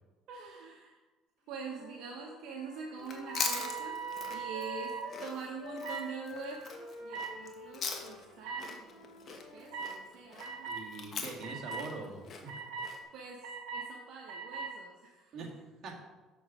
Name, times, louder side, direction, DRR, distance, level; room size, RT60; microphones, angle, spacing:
voice 1, 0.3-1.0 1.5-4.0 4.3-10.7 13.1-15.4, right 5 dB, 65° right, 0 dB, 0.9 m, -45 dB
Wind instrument woodwind instrument, 1.4-5.3 5.6-9.9, left 4 dB, 65° left, 2.2 m, -49 dB
Chewing mastication, 3.0-8.3 8.6-13.0, left 5 dB, 40° left, 1.1 m, -41 dB
sound 1, 3.2-5.0 5.8-6.0 7.1-7.3 8.4-8.6 9.7-9.9 10.4-10.8 11.4-11.8 12.5-12.9 13.4-13.9 14.3-14.7, right 6 dB, 85° right, 1.4 m, -39 dB
voice 2, 10.7-12.5 15.3-15.9, right 3 dB, 45° right, -1 dB, 1.8 m, -43 dB
7.0 x 6.3 x 4.8 m, 1.2 s
cardioid pair, 125°, 0 cm